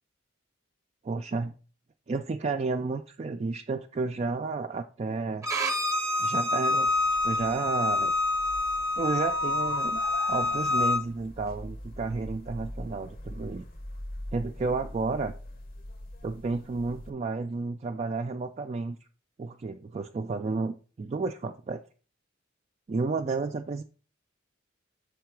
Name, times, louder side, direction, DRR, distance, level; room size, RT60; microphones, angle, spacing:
voice 1, 1.0-1.5 2.1-5.5 6.2-6.9 7.2-8.1 9.0-10.0 10.3-13.7 14.3-15.3 16.2-19.0 19.4-21.8 22.9-23.8, right 3 dB, 30° right, 4 dB, 0.3 m, -31 dB
Bowed string instrument, 5.4-11.0, left 2 dB, 15° right, 0.7 m, -27 dB
sound 1, 6.9-17.1, left 1 dB, 50° left, 0.8 m, -41 dB
6.5 x 3.8 x 4.6 m, 0.38 s
head